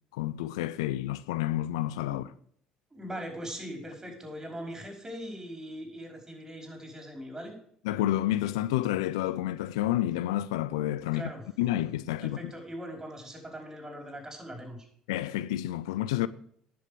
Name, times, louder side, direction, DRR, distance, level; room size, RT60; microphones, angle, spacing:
voice 1, 0.1-2.3 7.8-11.3 11.6-12.5 15.1-16.3, left 14 dB, 85° left, 0.4 m, -29 dB
voice 2, 2.9-7.5 11.1-11.4 12.2-14.9, equal, 20° right, 5.1 m, -41 dB
10.5 x 6.9 x 6.9 m
hypercardioid pair, 65°, 3 cm